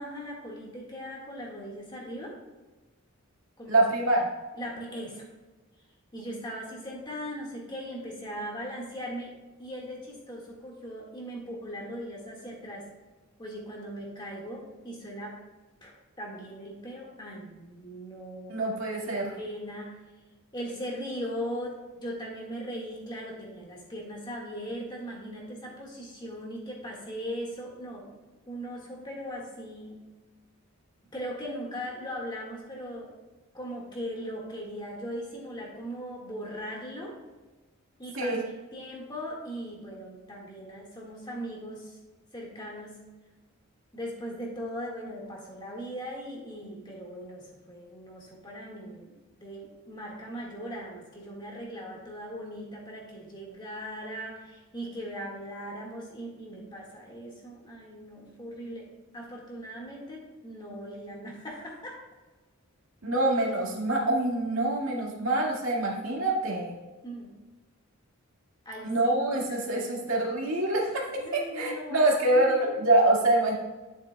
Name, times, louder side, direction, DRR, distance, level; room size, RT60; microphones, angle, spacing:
voice 1, 0.0-2.4 3.6-3.8 4.6-5.3 6.1-9.3 9.6-12.9 13.4-15.4 15.8-15.9 16.2-18.5 19.0-20.0 20.5-28.1 28.5-30.0 31.1-33.1 33.5-37.2 38.0-38.3 38.7-42.0 42.3-43.0 43.9-49.1 49.4-58.9 59.1-62.0 67.0-67.3 68.7-68.9 69.5-69.7 71.2-72.7, equal, 20° left, -2 dB, 1.8 m, -39 dB
voice 2, 3.7-4.3 18.5-19.3 38.1-38.4 63.0-66.8 68.8-73.6, right 2 dB, 65° right, -3 dB, 2.1 m, -25 dB
11.5 x 7.3 x 2.3 m, 1.2 s
head